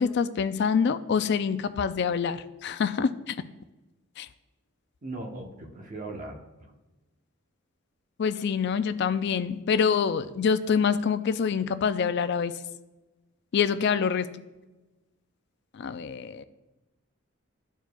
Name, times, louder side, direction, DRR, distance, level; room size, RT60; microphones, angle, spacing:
voice 1, 0.0-3.4 4.2-4.3 8.2-12.5 13.5-14.3 15.7-16.4, left 6 dB, 50° left, 13 dB, 0.3 m, -26 dB
voice 2, 5.0-6.7, right 2 dB, 35° right, 1 dB, 1.0 m, -39 dB
13.0 x 4.6 x 2.3 m, 1.1 s
head